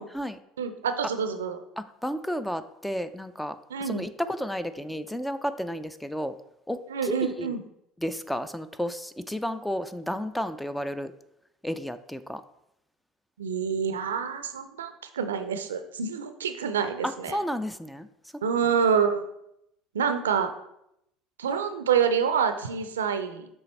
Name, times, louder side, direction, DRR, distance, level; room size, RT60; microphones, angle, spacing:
voice 1, 0.0-0.4 1.8-6.4 6.7-7.5 8.0-11.1 11.6-12.4 17.0-18.1, equal, 5° left, 12 dB, 0.4 m, -32 dB
voice 2, 0.6-1.6 3.7-4.0 6.9-7.6 13.4-17.4 18.4-19.3 19.9-20.5 21.4-23.5, right 7 dB, 80° right, 9 dB, 0.5 m, -27 dB
6.8 x 3.3 x 4.3 m, 0.79 s
hypercardioid pair, 65°, 0 cm